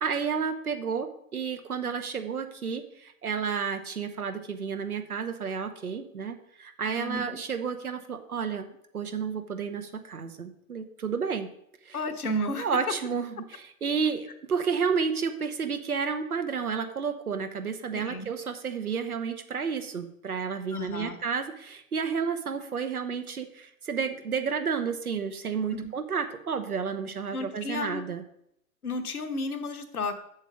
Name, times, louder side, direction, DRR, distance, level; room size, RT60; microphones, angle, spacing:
voice 1, 0.0-11.5 11.8-12.0 12.6-28.2, right 6 dB, 80° right, 8 dB, 1.1 m, -31 dB
voice 2, 7.0-7.4 11.9-12.7 17.9-18.3 20.7-21.2 25.7-25.9 27.3-28.0 28.8-30.2, left 1 dB, 80° left, 7 dB, 1.2 m, -32 dB
7.3 x 7.2 x 5.1 m, 0.76 s
figure-of-eight pair, 100°, 43 cm